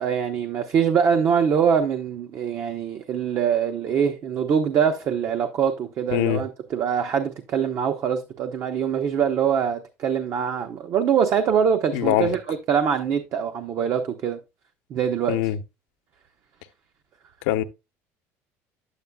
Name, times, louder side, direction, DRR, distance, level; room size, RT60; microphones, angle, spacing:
voice 1, 0.0-14.4 14.9-15.4, right 7 dB, 45° right, 0.7 m, -23 dB
voice 2, 6.1-6.4 11.9-12.3 15.3-15.6 17.5-17.6, left 13 dB, 85° left, 0.7 m, -22 dB
9.1 x 8.2 x 2.2 m
supercardioid pair, 120°, 7 cm